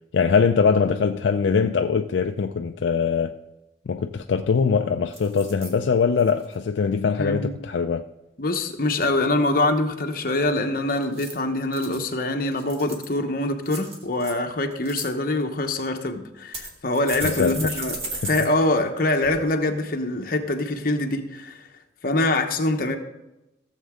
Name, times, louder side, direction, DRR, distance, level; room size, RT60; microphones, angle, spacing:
voice 1, 0.1-3.3 3.9-8.0 17.2-17.8 18.1-18.3, left 5 dB, 70° left, 0.4 m, -22 dB
sound 1, 4.0-4.1 4.3-4.7 5.1-5.7 6.2-6.5 11.0-12.0 12.5-13.2 13.7-14.3 14.7-15.1 15.8-15.9 16.5-18.5 18.8-18.9 19.2-19.3, right 2 dB, 30° right, 1.8 m, -35 dB
voice 2, 7.2-7.5 8.4-18.0 18.2-21.6 22.0-23.0, left 2 dB, 50° left, 1.0 m, -24 dB
16.0 x 7.3 x 3.7 m
head